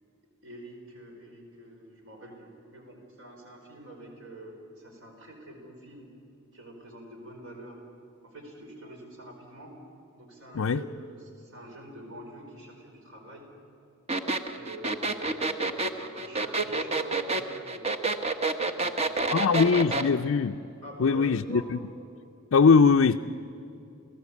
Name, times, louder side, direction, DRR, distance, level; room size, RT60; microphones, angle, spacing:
voice 1, 0.4-6.1 6.5-7.8 8.2-9.8 10.2-13.5 14.5-17.9 18.6-19.8 20.8-21.7, right 1 dB, 60° right, 2 dB, 4.7 m, -46 dB
sound 1, 14.1-20.1, right 3 dB, 30° right, 1.1 m, -28 dB
voice 2, 19.3-20.6 21.0-21.6 22.5-23.2, left 5 dB, 65° left, 4 dB, 0.5 m, -21 dB
29.0 x 16.5 x 8.4 m, 2.8 s
head